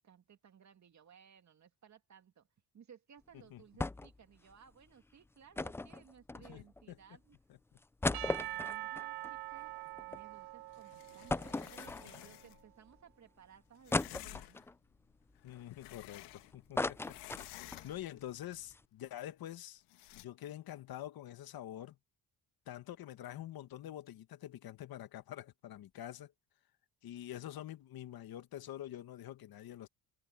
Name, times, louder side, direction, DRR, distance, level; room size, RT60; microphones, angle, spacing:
voice 1, 0.0-2.5 2.7-7.4 8.0-14.6 17.7-18.0, right 7 dB, 45° right, 2.5 m, -60 dB
sound 1, 3.8-4.2 4.5-4.6 5.6-6.8 7.4-7.5 7.8-10.2 10.6-10.7 11.3-12.4 13.0-13.1 13.9-14.8 15.3-16.3 16.5-17.9 18.2-18.3 18.6-18.8, left 2 dB, 5° left, 0.3 m, -37 dB
voice 2, 6.5-7.0 7.5-7.6 15.4-17.2 17.6-19.8 20.2-22.0 22.7-26.3 27.0-29.9, left 12 dB, 60° left, 1.7 m, -46 dB
Percussion / Church bell, 8.1-12.3, right 17 dB, 65° right, 1.4 m, -44 dB
sound 2, 10.7-12.7 13.8-14.7 15.3-16.7 17.0-18.2 19.9-20.2, left 18 dB, 90° left, 1.6 m, -52 dB
cardioid pair, 95°, 40 cm